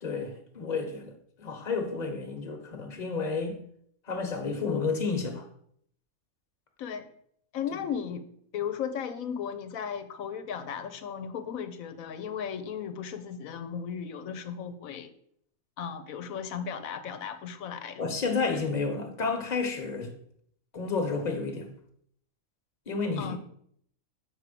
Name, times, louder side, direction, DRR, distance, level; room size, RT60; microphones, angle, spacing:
voice 1, 0.0-1.1 1.4-3.6 4.1-5.4 18.0-20.1 20.7-21.7 22.9-23.4, left 4 dB, 30° left, 1.2 m, -31 dB
voice 2, 6.8-7.1 7.5-8.3 8.5-15.1 15.8-18.1 23.2-23.4, left 7 dB, 75° left, 1.2 m, -36 dB
6.3 x 4.8 x 6.7 m
omnidirectional pair, 1.5 m